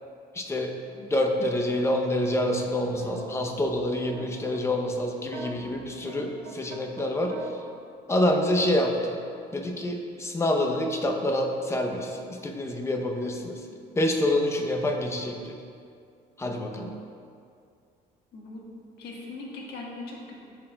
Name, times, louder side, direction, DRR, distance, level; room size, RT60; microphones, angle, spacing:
voice 1, 0.3-7.5 8.1-9.2 9.5-13.7 14.0-15.5 16.4-16.9, left 1 dB, 15° left, 2 dB, 0.6 m, -27 dB
sound 1, 2.7-4.8 5.2-7.5, right 3 dB, 55° right, 0.6 m, -41 dB
voice 2, 18.3-18.6 19.0-20.3, left 3 dB, 75° left, -3 dB, 1.3 m, -39 dB
11.0 x 4.4 x 2.2 m, 2.4 s
cardioid pair, 110°, 17 cm